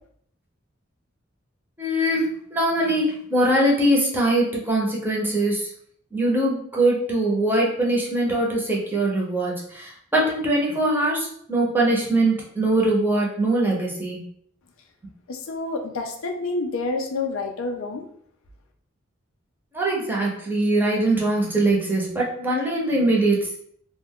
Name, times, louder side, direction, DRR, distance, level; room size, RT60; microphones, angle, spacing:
voice 1, 1.8-5.7 6.1-14.2 19.7-23.6, right 1 dB, 10° right, -3 dB, 0.6 m, -22 dB
voice 2, 15.3-18.0, left 3 dB, 75° left, 4 dB, 0.4 m, -28 dB
2.3 x 2.2 x 3.5 m, 0.65 s
head